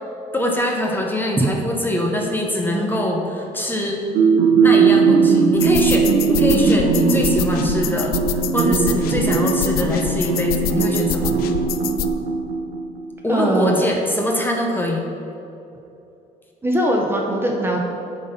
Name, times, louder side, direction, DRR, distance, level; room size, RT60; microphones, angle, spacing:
voice 1, 0.3-4.1 4.6-8.2 8.5-11.3 13.2-15.0, left 1 dB, 10° left, 0 dB, 0.9 m, -23 dB
sound 1, 4.1-12.9, right 5 dB, 75° right, 0.8 m, -19 dB
sound 2, 5.6-12.1, left 7 dB, 70° left, 0.4 m, -27 dB
voice 2, 13.3-13.8 16.6-17.8, right 1 dB, 15° right, 0 dB, 0.9 m, -21 dB
9.2 x 4.2 x 5.3 m, 2.8 s
cardioid pair, 125°, 16 cm